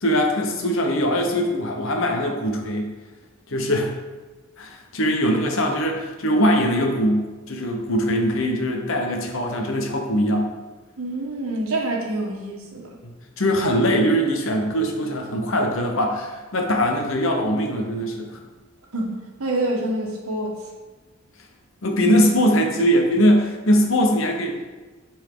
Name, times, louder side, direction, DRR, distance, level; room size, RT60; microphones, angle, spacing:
voice 1, 0.0-2.9 3.5-3.9 4.6-10.5 13.4-18.4 21.8-24.7, equal, 65° left, 2 dB, 1.1 m, -21 dB
voice 2, 11.0-12.9 18.9-20.6, right 1 dB, 80° right, 1 dB, 1.3 m, -27 dB
7.8 x 4.5 x 3.9 m, 1.2 s
head